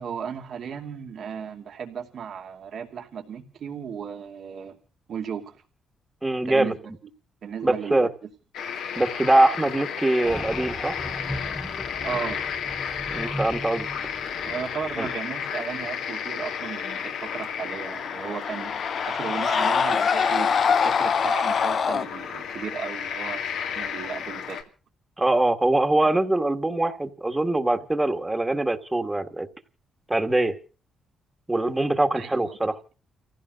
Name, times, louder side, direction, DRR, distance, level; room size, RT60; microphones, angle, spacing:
voice 1, 0.0-4.8 5.1-5.6 6.5-6.7 7.4-8.1 12.0-12.4 14.4-18.7 19.1-24.6 32.1-32.6, right 7 dB, 65° right, 2 dB, 2.8 m, -35 dB
voice 2, 6.2-6.7 7.6-8.1 9.0-10.9 13.1-13.9 15.0-15.1 25.2-29.5 30.1-30.5 31.5-32.8, right 2 dB, 20° right, 9 dB, 1.9 m, -23 dB
sound 1, 8.5-24.6, left 7 dB, 80° left, 2.1 m, -33 dB
sound 2, 10.2-15.5, equal, 5° left, 1.2 m, -37 dB
Screaming, 17.6-22.1, left 6 dB, 55° left, 0.8 m, -24 dB
29.5 x 16.0 x 2.6 m, 0.37 s
supercardioid pair, 60°, 0 cm